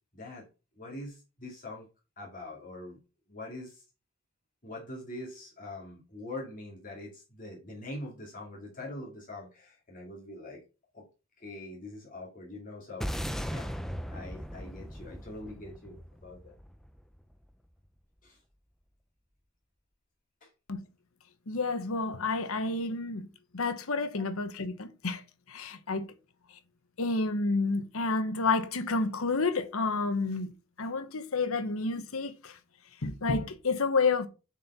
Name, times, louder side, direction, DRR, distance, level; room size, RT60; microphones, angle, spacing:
voice 1, 0.1-0.5 0.7-1.9 2.2-3.0 3.3-3.8 4.6-10.6 10.9-11.0 11.4-13.1 13.5-13.7 14.1-16.5 18.2-18.4 20.4-20.5 24.1-24.2, left 2 dB, 35° left, 2.3 m, -43 dB
sound 1, 13.0-17.5, equal, ahead, 0.5 m, -38 dB
voice 2, 21.5-23.3 23.5-25.2 25.5-26.1 27.0-30.5 30.8-32.6 33.0-34.3, left 3 dB, 70° left, 1.0 m, -30 dB
7.1 x 4.6 x 5.4 m
head